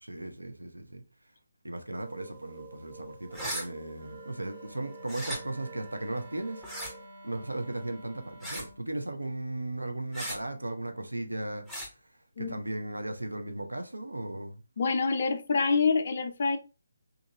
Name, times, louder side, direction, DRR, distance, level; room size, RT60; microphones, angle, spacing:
voice 1, 0.0-1.0 1.6-6.6 7.2-14.6, right 2 dB, 75° right, 0.5 m, -36 dB
sound 1, 2.0-7.1, right 4 dB, 40° right, 0.7 m, -50 dB
sound 2, 3.3-3.7 5.1-5.4 6.6-6.9 8.4-8.7 10.1-10.4 11.7-11.9, equal, ahead, 0.6 m, -36 dB
Wind instrument woodwind instrument, 3.9-8.8, right 1 dB, 55° right, 1.2 m, -50 dB
voice 2, 14.8-16.6, left 4 dB, 45° left, 0.5 m, -26 dB
2.8 x 2.5 x 2.7 m
figure-of-eight pair, 145°, 0 cm